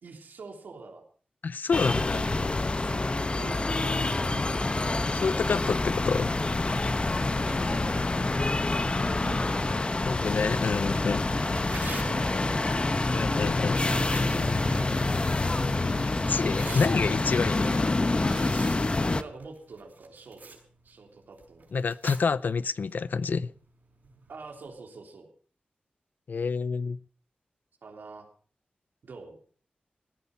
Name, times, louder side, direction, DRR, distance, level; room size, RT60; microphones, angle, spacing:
voice 1, 0.0-1.0 1.6-4.7 7.2-10.1 11.5-13.0 13.9-15.5 17.7-18.0 19.1-20.6 20.8-21.7 24.3-25.3 27.8-28.3 29.0-29.4, right 4 dB, 90° right, 3.4 m, -45 dB
voice 2, 1.4-2.3 5.1-6.3 10.1-11.2 13.1-13.8 16.0-17.8 21.7-23.5 26.3-27.0, left 5 dB, 70° left, 0.5 m, -28 dB
sound 1, 1.7-19.2, left 2 dB, 35° left, 1.0 m, -27 dB
sound 2, 10.1-18.4, right 1 dB, 15° right, 3.3 m, -49 dB
Tearing, 10.8-24.7, right 4 dB, 65° right, 5.5 m, -49 dB
18.0 x 10.0 x 5.5 m
cardioid pair, 65°, 3 cm